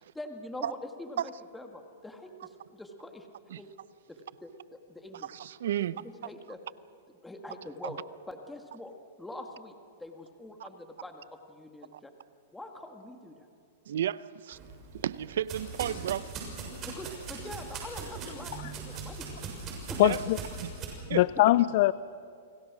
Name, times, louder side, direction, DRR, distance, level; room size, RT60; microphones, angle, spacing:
voice 1, 0.1-3.3 3.6-3.7 4.1-4.5 4.9-5.3 5.8-6.6 7.2-8.0 8.3-8.9 9.2-12.1 12.5-13.5 16.8-19.5 19.9-20.0, left 1 dB, 5° left, 1.9 m, -44 dB
voice 2, 5.2-6.0 7.8-7.9 10.6-10.7 11.9-12.0 13.9-14.6 14.9-16.3 20.0-20.2 20.6-20.7 21.1-21.3, right 10 dB, 75° right, 0.7 m, -33 dB
sound 1, 14.5-20.9, right 4 dB, 30° right, 6.7 m, -40 dB
voice 3, 20.0-20.4 21.1-21.9, left 16 dB, 55° left, 0.5 m, -22 dB
30.0 x 21.0 x 6.2 m
hypercardioid pair, 135°, 0 cm